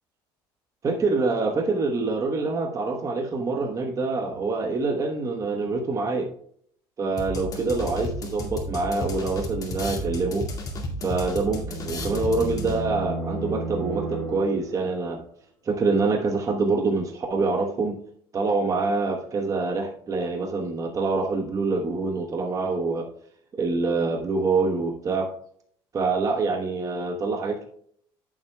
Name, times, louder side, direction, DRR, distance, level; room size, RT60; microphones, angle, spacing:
voice 1, 0.8-6.3 7.0-10.4 11.0-15.2 15.6-18.0 18.3-23.1 23.6-25.3 25.9-27.6, right 3 dB, 30° right, 3 dB, 1.1 m, -25 dB
sound 1, 7.2-13.0, left 1 dB, 35° left, 2.1 m, -33 dB
sound 2, 11.1-15.0, right 2 dB, 10° left, 3.3 m, -34 dB
14.0 x 7.3 x 2.2 m, 0.63 s
cardioid pair, 115°, 11 cm